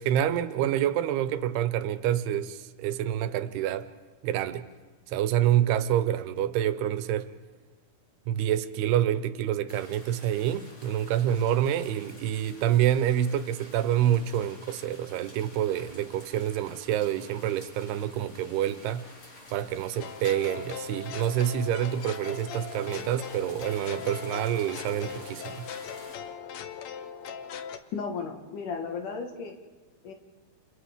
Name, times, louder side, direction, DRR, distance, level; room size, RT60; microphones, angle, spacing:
voice 1, 0.0-3.9 4.2-4.7 5.1-7.3 8.3-19.1 19.5-25.7, right 11 dB, 85° right, 2.8 m, -27 dB
sound 1, 9.7-26.2, left 1 dB, 45° left, 5.1 m, -50 dB
sound 2, 20.0-27.8, left 7 dB, 90° left, 1.5 m, -40 dB
voice 2, 27.9-29.6 30.0-30.1, left 5 dB, 60° left, 2.8 m, -34 dB
30.0 x 29.5 x 3.6 m
omnidirectional pair, 4.5 m